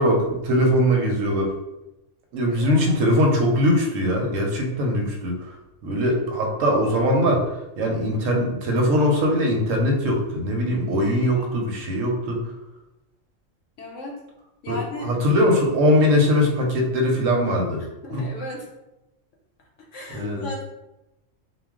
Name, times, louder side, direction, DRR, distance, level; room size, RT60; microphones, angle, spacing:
voice 1, 0.0-1.5 2.3-5.6 5.8-7.5 7.8-12.5 14.7-17.8 18.1-18.2 20.1-20.5, equal, 85° right, 1 dB, 1.0 m, -21 dB
voice 2, 2.5-2.8 11.3-11.6 13.8-14.2 14.6-15.1 17.8-18.6 19.9-20.6, left 2 dB, 75° left, -1 dB, 0.9 m, -35 dB
2.3 x 2.2 x 3.5 m, 0.95 s
omnidirectional pair, 1.3 m